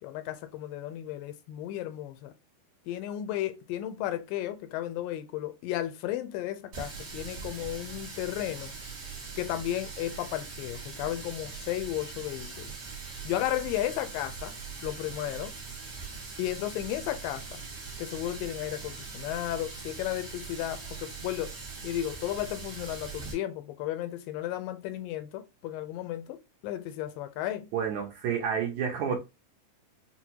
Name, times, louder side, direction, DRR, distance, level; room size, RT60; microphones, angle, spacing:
voice 1, 0.0-2.3 2.9-8.7 9.4-12.7 13.2-14.6 14.8-15.5 16.4-17.6 18.0-21.6 21.8-27.7, left 13 dB, 85° left, 2.3 m, -34 dB
Water tap faucet, 6.7-23.3, right 5 dB, 55° right, 1.1 m, -41 dB
voice 2, 27.7-29.2, right 7 dB, 75° right, 1.8 m, -29 dB
6.1 x 2.2 x 2.8 m
omnidirectional pair, 3.9 m